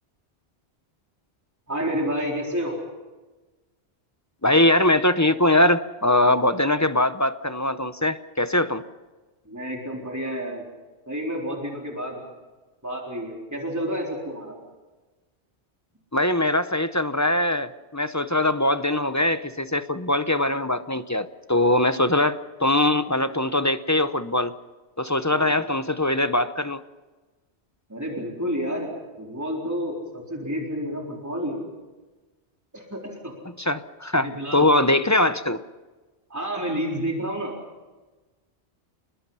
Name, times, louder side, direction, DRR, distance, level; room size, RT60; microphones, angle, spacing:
voice 1, 1.7-2.8 9.5-10.6 11.1-12.2 12.8-14.5 25.3-25.6 27.9-31.6 32.7-33.3 34.2-34.8 36.3-37.5, equal, 15° right, -1 dB, 4.0 m, -30 dB
voice 2, 4.4-8.8 16.1-24.5 25.0-26.8 33.6-35.6, left 1 dB, 15° left, 11 dB, 0.7 m, -22 dB
29.5 x 21.0 x 5.6 m, 1.2 s
omnidirectional pair, 1.2 m